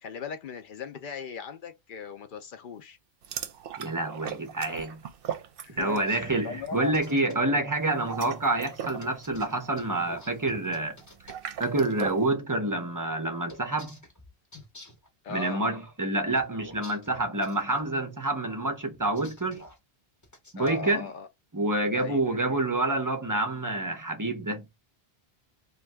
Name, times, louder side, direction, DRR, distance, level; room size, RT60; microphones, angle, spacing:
voice 1, 0.0-3.0 5.6-6.9 7.5-7.6 15.2-15.6 20.6-21.3 21.9-22.2, left 5 dB, 60° left, 0.6 m, -38 dB
sound 1, 3.2-6.2 6.4-6.7 7.9-12.3, right 8 dB, 65° right, 0.7 m, -39 dB
voice 2, 3.8-5.0 5.7-11.0 11.6-14.0 15.3-19.6 20.5-21.1 21.5-24.6, right 2 dB, 25° right, 0.4 m, -28 dB
sound 2, 5.9-7.4 9.0-11.4 13.5-15.1 16.4-17.9 18.9-19.8 20.2-20.8, left 1 dB, 20° left, 0.6 m, -49 dB
2.6 x 2.3 x 3.2 m
omnidirectional pair, 1.1 m